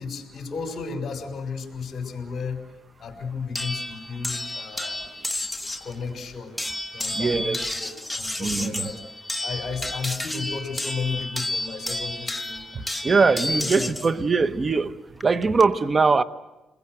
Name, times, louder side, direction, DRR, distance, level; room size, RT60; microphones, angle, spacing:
voice 1, 0.0-2.7 3.0-5.0 5.8-6.6 6.9-9.0 9.4-13.9, left 5 dB, 50° left, 5.7 m, -34 dB
sound 1, 3.6-5.9 6.6-14.1 15.2-15.6, left 1 dB, 5° left, 1.4 m, -31 dB
voice 2, 7.1-7.6 8.4-8.9 12.7-16.2, right 4 dB, 35° right, 1.2 m, -22 dB
29.5 x 21.5 x 7.9 m
cardioid pair, 90°, 0 cm